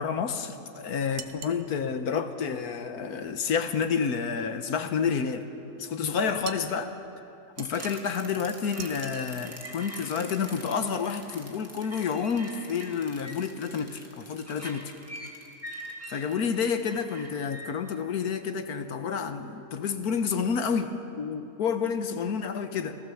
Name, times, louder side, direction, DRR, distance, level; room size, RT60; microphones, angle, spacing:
voice 1, 0.0-5.5 5.8-6.9 7.6-14.9 16.1-23.0, left 6 dB, 70° left, 8 dB, 1.6 m, -29 dB
sound 1, 1.2-1.6 6.4-6.8 7.6-8.2 8.8-9.3, right 8 dB, 80° right, 1.5 m, -41 dB
sound 2, 7.6-17.7, equal, 10° right, 2.3 m, -44 dB
28.0 x 15.5 x 7.1 m, 2.9 s
omnidirectional pair, 1.7 m